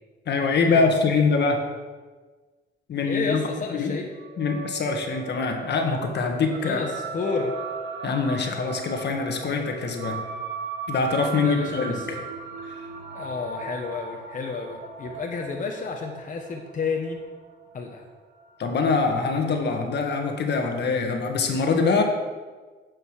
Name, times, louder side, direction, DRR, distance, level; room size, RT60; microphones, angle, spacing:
voice 1, 0.3-1.6 2.9-4.0 4.4-6.8 8.0-10.2 10.9-12.2 12.7-12.8 18.6-22.0, left 4 dB, 60° left, 4 dB, 1.5 m, -24 dB
voice 2, 3.0-4.1 6.6-7.5 11.3-12.2 13.1-17.2 17.7-18.0, left 4 dB, 40° left, 1 dB, 1.2 m, -31 dB
sound 1, 4.1-18.9, right 5 dB, 70° right, 1.4 m, -38 dB
9.6 x 5.3 x 6.5 m, 1.4 s
cardioid pair, 90°, 20 cm